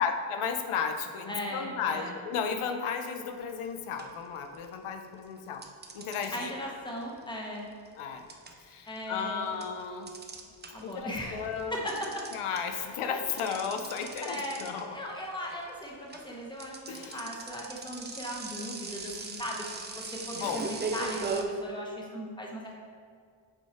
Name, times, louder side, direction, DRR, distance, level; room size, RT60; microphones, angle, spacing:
voice 1, 0.0-5.6 5.9-6.5 8.0-8.2 8.6-10.1 10.8-11.8 12.3-14.9 16.9-17.3 20.3-20.7, left 6 dB, 85° left, 6 dB, 0.7 m, -34 dB
voice 2, 1.3-2.1 6.3-7.7 8.9-9.5 10.7-12.2 12.8-12.9 14.0-22.8, equal, 10° left, -2 dB, 1.0 m, -38 dB
sound 1, 3.4-3.7 4.0-4.9 5.6-11.0 11.3-21.4, right 4 dB, 20° right, 0.5 m, -39 dB
7.6 x 4.7 x 4.3 m, 2.1 s
wide cardioid pair, 150°, 49 cm